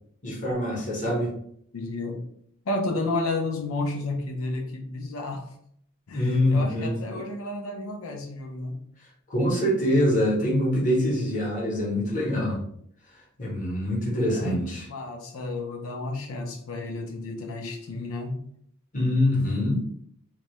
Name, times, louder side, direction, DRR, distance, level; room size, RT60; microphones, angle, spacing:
voice 1, 0.2-1.3 6.1-6.9 9.3-12.6 13.4-14.9 18.9-19.8, left 1 dB, 35° left, -4 dB, 0.9 m, -24 dB
voice 2, 1.7-2.2 2.7-5.5 6.1-8.8 14.3-14.6 14.9-18.4, left 2 dB, 65° left, 2 dB, 0.5 m, -32 dB
2.3 x 2.0 x 2.9 m, 0.68 s
head